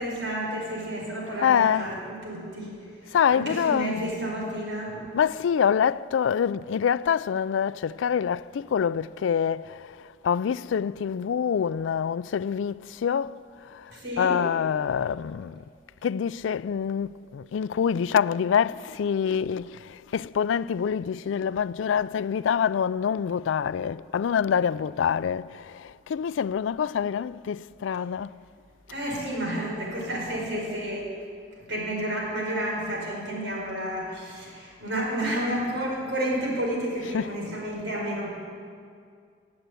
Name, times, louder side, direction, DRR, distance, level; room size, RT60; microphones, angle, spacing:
voice 1, 0.0-5.1 13.9-14.4 28.9-31.1 31.6-38.3, right 1 dB, 70° right, 4.9 m, -31 dB
voice 2, 1.4-1.9 3.1-3.9 5.1-13.4 13.7-13.9 14.2-15.6 16.0-28.4 37.0-37.3, left 7 dB, 90° left, 0.3 m, -26 dB
17.5 x 8.1 x 9.0 m
head